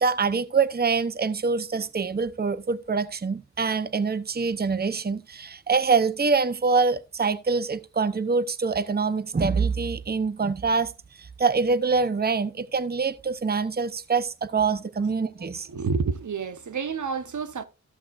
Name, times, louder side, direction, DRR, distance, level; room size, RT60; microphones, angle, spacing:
voice 1, 0.0-10.9 11.2-15.7, right 4 dB, 30° right, 0.7 m, -25 dB
voice 2, 15.0-17.6, right 5 dB, 75° right, 0.9 m, -30 dB
13.5 x 7.4 x 2.4 m
cardioid pair, 50°, 30 cm